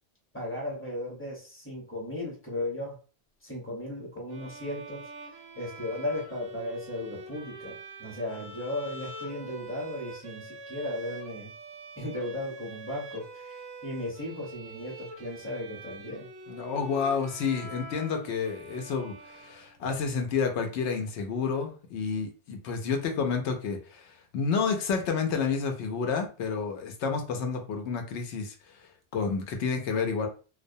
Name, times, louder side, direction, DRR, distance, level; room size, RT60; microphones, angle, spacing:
voice 1, 0.3-3.0 3.4-5.1 5.5-11.5 12.0-16.3, left 1 dB, 15° left, -3 dB, 0.8 m, -36 dB
sound 1, 4.3-20.0, right 2 dB, 55° right, 0.5 m, -45 dB
voice 2, 16.5-28.5 29.1-30.3, left 5 dB, 80° left, 4 dB, 0.9 m, -30 dB
2.2 x 2.1 x 2.6 m, 0.36 s
omnidirectional pair, 1.1 m